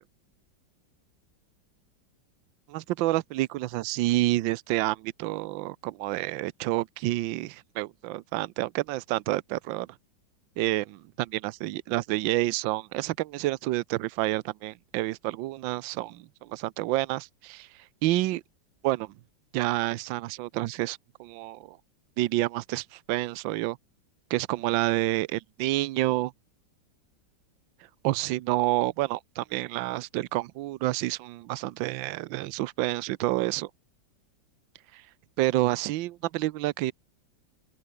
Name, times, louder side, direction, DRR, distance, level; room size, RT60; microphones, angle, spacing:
voice 1, 2.7-9.9 10.6-17.7 18.0-18.4 18.8-19.1 19.5-21.8 22.2-23.8 24.3-26.3 28.0-33.7 34.9-35.0 35.4-36.9, right 17 dB, 80° right, 1.4 m, -29 dB
open air
omnidirectional pair, 2.1 m